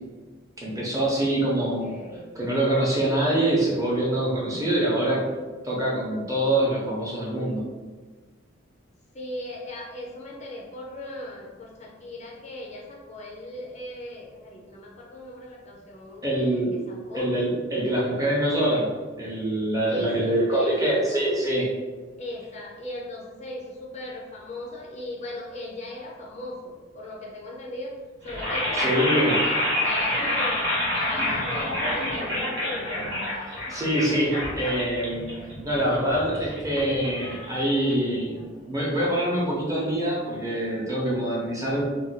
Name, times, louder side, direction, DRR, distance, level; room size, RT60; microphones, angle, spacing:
voice 1, 0.6-1.9 2.3-5.2 5.6-7.6 16.2-16.7 17.1-18.9 19.2-21.7 28.7-29.4 33.3-35.3 35.6-41.8, right 1 dB, 20° right, -5 dB, 0.8 m, -25 dB
voice 2, 1.6-2.3 9.1-17.3 19.9-21.1 22.2-27.9 28.2-32.5, left 1 dB, 35° left, -2 dB, 0.5 m, -38 dB
sound 1, 28.2-38.3, left 1 dB, 80° right, 1.1 m, -28 dB
2.5 x 2.3 x 4.0 m, 1.4 s
head